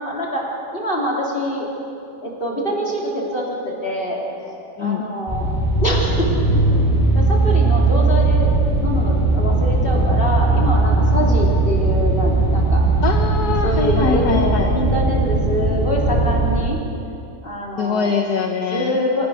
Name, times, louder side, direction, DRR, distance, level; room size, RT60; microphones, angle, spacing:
voice 1, 0.0-1.7 2.2-5.5 5.8-6.3 7.1-12.8 13.6-17.2 17.4-18.2 18.7-19.3, equal, 30° left, -3 dB, 3.9 m, -25 dB
sound 1, 5.3-16.6, right 2 dB, 10° left, 5.1 m, -18 dB
voice 2, 13.0-14.6 17.8-18.9, left 5 dB, 65° left, 2 dB, 1.7 m, -22 dB
27.5 x 16.5 x 6.6 m, 2.7 s
omnidirectional pair, 1.8 m